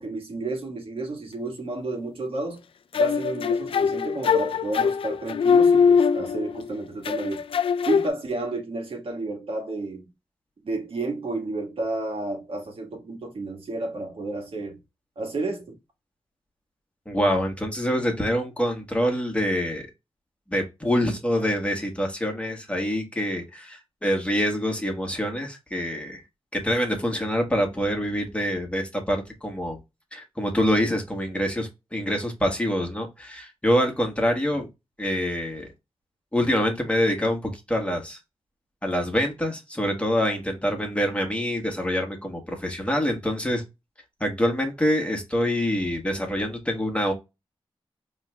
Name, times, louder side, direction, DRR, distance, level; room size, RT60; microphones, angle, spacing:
voice 1, 0.0-2.6 2.9-7.5 7.9-10.0 10.6-14.8 15.1-15.8, right 2 dB, 65° right, 1.5 m, -31 dB
sound 1, 2.9-6.6 7.0-8.1, left 6 dB, 65° left, 0.4 m, -22 dB
voice 2, 17.1-19.9 20.5-26.2 26.5-29.8 30.1-34.7 35.0-35.7 36.3-38.2 38.8-43.6 44.2-47.1, equal, 10° left, 1.4 m, -25 dB
4.4 x 3.2 x 2.3 m
cardioid pair, 60°, 10 cm